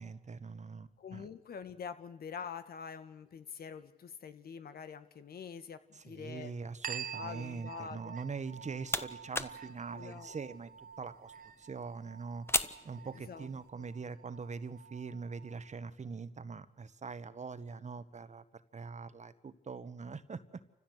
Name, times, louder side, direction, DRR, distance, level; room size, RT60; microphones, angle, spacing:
voice 1, 0.0-1.3 5.9-12.5 12.8-20.4, right 5 dB, 45° right, 13 dB, 1.4 m, -43 dB
voice 2, 1.0-6.5 7.2-8.2 9.9-10.4 13.3-13.5 13.8-13.9, left 7 dB, 75° left, 10 dB, 1.6 m, -45 dB
sound 1, 6.8-15.9, right 7 dB, 60° right, 1.1 m, -48 dB
sound 2, 8.4-13.7, left 2 dB, 15° left, 1.2 m, -40 dB
28.5 x 15.0 x 8.0 m, 1.0 s
cardioid pair, 55°, 16 cm